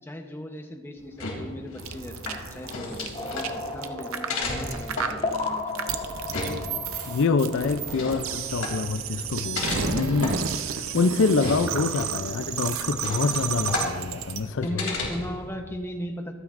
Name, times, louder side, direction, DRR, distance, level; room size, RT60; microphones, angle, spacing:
voice 1, 0.0-6.0 14.4-16.3, equal, 10° left, 3 dB, 0.9 m, -37 dB
sound 1, 1.0-15.5, left 2 dB, 85° left, 3.1 m, -35 dB
sound 2, 1.8-14.4, right 7 dB, 80° right, 0.7 m, -32 dB
sound 3, 3.1-8.5, left 3 dB, 30° left, 1.4 m, -35 dB
voice 2, 7.1-10.5 10.9-14.8, left 4 dB, 65° left, 11 dB, 0.4 m, -26 dB
24.5 x 9.1 x 2.6 m, 1.5 s
head